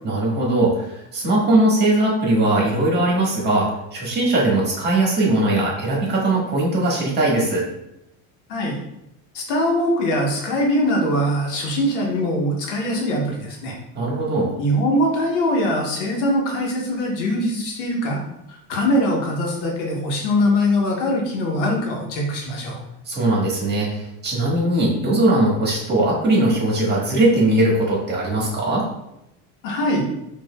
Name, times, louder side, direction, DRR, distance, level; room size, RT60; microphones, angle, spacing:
voice 1, 0.0-7.6 13.9-14.5 23.0-28.8, right 2 dB, 30° right, -3 dB, 1.3 m, -20 dB
voice 2, 9.3-13.8 14.6-18.2 18.5-22.8 29.6-30.1, left 1 dB, 90° left, -1 dB, 1.1 m, -22 dB
4.5 x 2.6 x 2.2 m, 0.85 s
supercardioid pair, 120°, 35 cm